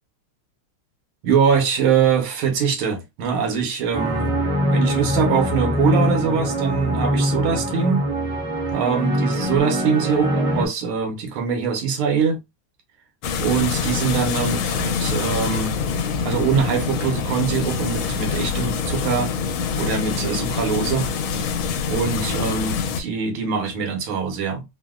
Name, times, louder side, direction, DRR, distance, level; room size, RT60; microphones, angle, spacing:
voice 1, 1.2-4.3 4.7-8.1 8.7-12.4 13.4-15.8 16.2-19.3 19.8-21.1 21.9-24.6, right 6 dB, 90° right, 1.7 m, -23 dB
sound 1, 3.9-10.7, equal, 35° right, 0.5 m, -23 dB
sound 2, 13.2-23.0, left 5 dB, 85° left, 1.4 m, -25 dB
3.9 x 2.0 x 2.3 m
omnidirectional pair, 2.2 m